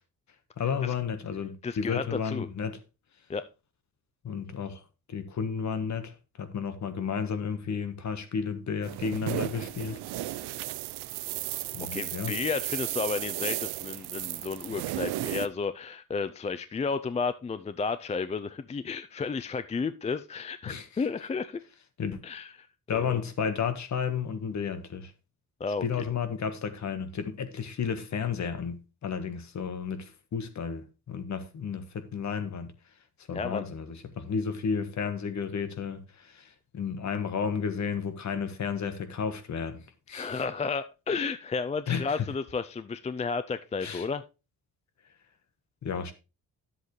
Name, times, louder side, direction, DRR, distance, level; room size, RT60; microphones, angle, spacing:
voice 1, 0.6-2.8 4.2-4.8 5.1-10.3 11.7-12.4 20.7-20.9 22.0-22.2 22.9-25.1 25.8-32.7 33.3-40.4 41.9-42.3 43.8-44.1 45.8-46.1, left 6 dB, 45° left, 1.4 m, -32 dB
voice 2, 1.6-2.5 3.3-3.5 11.9-21.6 22.2-22.5 22.9-23.2 25.6-25.8 33.3-33.6 40.1-44.2, left 5 dB, 20° left, 0.4 m, -32 dB
sound 1, 8.8-15.5, right 16 dB, 90° right, 0.6 m, -34 dB
10.5 x 7.7 x 3.1 m
cardioid pair, 110°, 38 cm